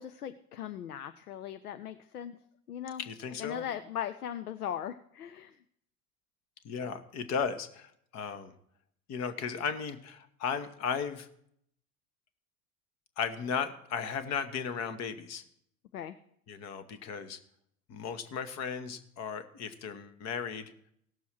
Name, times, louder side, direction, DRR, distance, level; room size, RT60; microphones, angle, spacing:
voice 1, 0.0-2.4 2.7-3.0 3.4-5.6 15.9-16.2, left 10 dB, 75° left, 10 dB, 0.7 m, -39 dB
voice 2, 3.0-3.6 6.6-8.5 9.1-11.3 13.2-15.4 16.5-17.4 17.9-20.7, left 6 dB, 35° left, 10 dB, 1.2 m, -35 dB
17.5 x 6.9 x 4.5 m, 0.70 s
figure-of-eight pair, 75°, 45 cm